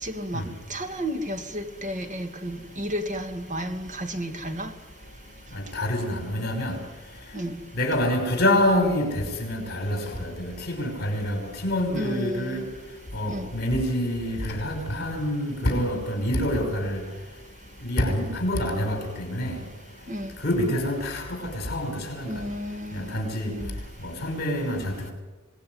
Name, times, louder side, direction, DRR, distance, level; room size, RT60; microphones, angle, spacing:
voice 1, 0.0-0.4 0.7-4.7 7.3-7.6 11.9-12.6 13.3-13.5 20.1-20.3 22.3-23.2 23.5-23.7, equal, 35° right, 7 dB, 2.3 m, -32 dB
voice 2, 5.5-6.8 7.7-12.6 13.1-17.0 17.8-19.6 20.4-22.3 22.9-23.5 24.0-25.1, left 1 dB, 50° left, 4 dB, 5.7 m, -26 dB
26.0 x 19.0 x 9.6 m, 1.2 s
head